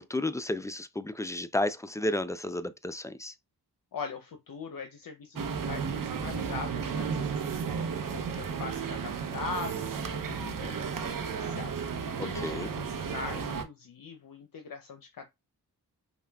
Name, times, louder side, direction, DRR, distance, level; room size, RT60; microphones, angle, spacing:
voice 1, 0.0-3.3 12.2-12.7, left 1 dB, 10° left, 0.4 m, -32 dB
voice 2, 3.9-7.7 8.1-15.3, left 5 dB, 55° left, 0.7 m, -41 dB
sound 1, 5.3-13.6, right 6 dB, 55° right, 0.8 m, -33 dB
5.5 x 2.3 x 2.3 m
supercardioid pair, 45°, 40 cm